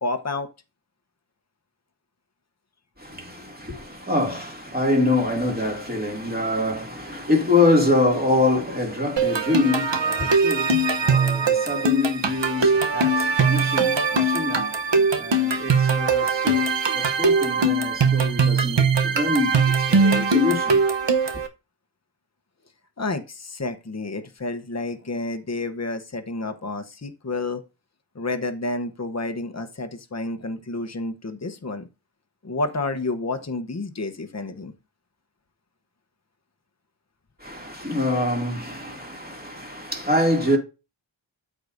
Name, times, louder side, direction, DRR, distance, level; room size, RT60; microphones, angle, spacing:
voice 1, 0.0-0.5 23.0-27.6 28.1-31.9 32.4-34.7 39.9-40.2, left 2 dB, 35° left, 1.0 m, -30 dB
voice 2, 3.0-20.8 37.4-40.6, left 2 dB, 20° right, 2.5 m, -25 dB
sound 1, 9.2-21.5, right 3 dB, 65° right, 1.0 m, -21 dB
13.0 x 4.8 x 2.6 m
wide cardioid pair, 55°, 48 cm